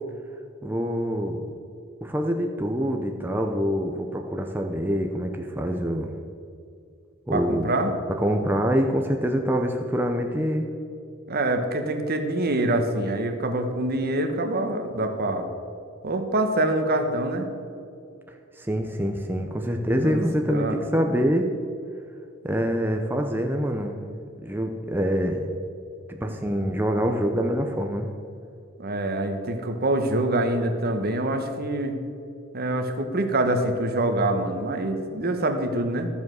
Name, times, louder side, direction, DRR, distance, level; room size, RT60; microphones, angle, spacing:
voice 1, 0.6-1.4 2.0-6.1 7.3-7.7 8.2-10.7 18.6-21.5 22.4-24.1 24.4-25.5 26.2-28.1, equal, 10° right, 3 dB, 0.6 m, -25 dB
voice 2, 7.3-7.9 11.3-15.5 16.0-17.5 20.0-20.9 26.2-26.3 28.8-32.0 32.5-36.1, right 1 dB, 50° right, 6 dB, 1.2 m, -25 dB
13.0 x 7.2 x 6.3 m, 2.5 s
head